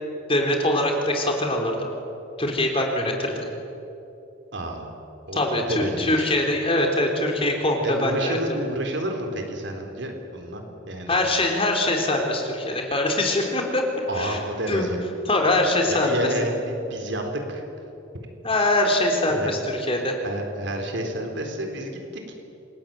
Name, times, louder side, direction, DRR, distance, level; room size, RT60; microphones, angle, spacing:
voice 1, 0.3-1.9 2.4-3.5 5.3-8.4 11.1-13.9 14.1-14.4 14.7-14.9 15.3-16.1 18.4-20.2, left 1 dB, 30° left, 2 dB, 3.8 m, -23 dB
voice 2, 4.5-5.0 5.3-6.1 7.8-11.2 14.1-15.0 15.9-17.6 19.3-19.5 20.2-22.3, right 1 dB, 65° right, 3 dB, 4.1 m, -30 dB
28.0 x 20.0 x 9.0 m, 2.9 s
head